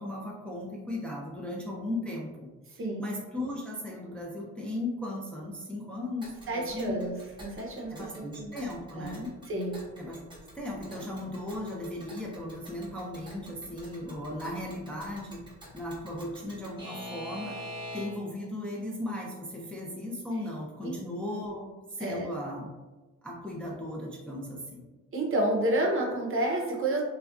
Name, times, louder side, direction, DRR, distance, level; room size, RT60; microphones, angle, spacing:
voice 1, 0.0-7.0 7.9-9.3 10.0-10.2 10.5-15.4 15.7-17.6 17.9-22.7 23.2-24.8, left 1 dB, 5° left, -4 dB, 0.4 m, -37 dB
Alarm / Clock, 6.2-18.4, equal, 15° right, 0.8 m, -46 dB
voice 2, 6.5-7.1 7.4-8.6 9.0-9.2 9.5-9.8 20.8-21.0 22.0-22.3 25.1-27.0, right 1 dB, 45° right, -1 dB, 0.6 m, -30 dB
2.5 x 2.2 x 2.3 m, 1.2 s
cardioid pair, 90°, 30 cm